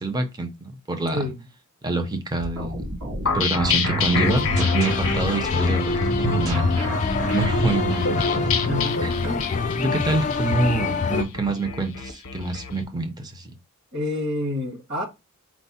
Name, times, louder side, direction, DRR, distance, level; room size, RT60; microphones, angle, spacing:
voice 1, 0.0-1.3 1.8-2.8 3.3-6.8 7.3-8.5 9.0-9.1 9.7-13.5, right 2 dB, 20° right, 0.6 m, -26 dB
sound 1, 2.4-8.6, right 1 dB, 70° right, 1.6 m, -33 dB
sound 2, 3.3-12.7, left 4 dB, 65° left, 0.6 m, -28 dB
sound 3, 4.1-11.2, left 4 dB, 35° left, 0.4 m, -25 dB
voice 2, 8.5-9.6 13.9-15.0, left 1 dB, 50° right, 1.7 m, -29 dB
4.4 x 2.0 x 4.1 m
head